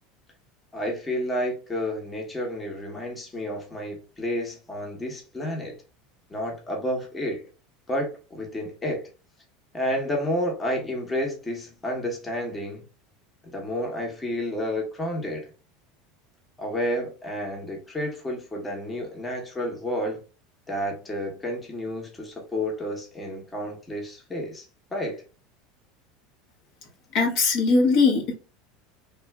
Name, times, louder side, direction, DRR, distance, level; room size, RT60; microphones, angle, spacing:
voice 1, 0.7-5.8 6.3-7.4 7.9-9.1 9.7-12.8 13.4-15.5 16.6-20.2 20.7-24.7 24.9-25.2, equal, 15° left, 0.9 m, -30 dB
voice 2, 27.1-28.3, left 4 dB, 55° left, 0.9 m, -20 dB
3.2 x 2.4 x 2.2 m
supercardioid pair, 135°, 0 cm